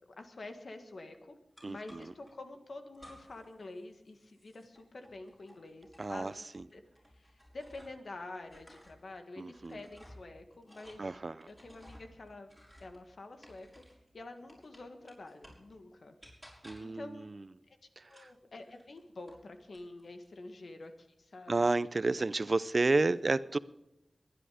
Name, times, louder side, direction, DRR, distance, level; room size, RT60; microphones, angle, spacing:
voice 1, 0.2-1.4 1.7-6.4 6.7-6.8 7.1-11.2 11.5-12.5 12.8-13.8 14.1-16.2 16.8-17.3 17.7-17.8 18.1-21.7, left 2 dB, 80° left, 6 dB, 1.7 m, -48 dB
sound 1, 1.6-2.3 2.9-3.5 3.8-8.1 8.4-14.1 14.5-15.7 16.2-17.0 18.0-19.4 19.7-20.3, equal, 10° left, 6.3 m, -57 dB
voice 2, 1.6-2.1 6.0-6.6 9.4-9.8 11.0-11.5 16.6-17.4 18.0-18.3 21.5-23.6, right 3 dB, 55° right, 17 dB, 0.5 m, -31 dB
22.5 x 10.0 x 5.0 m, 0.94 s
cardioid pair, 50°, 0 cm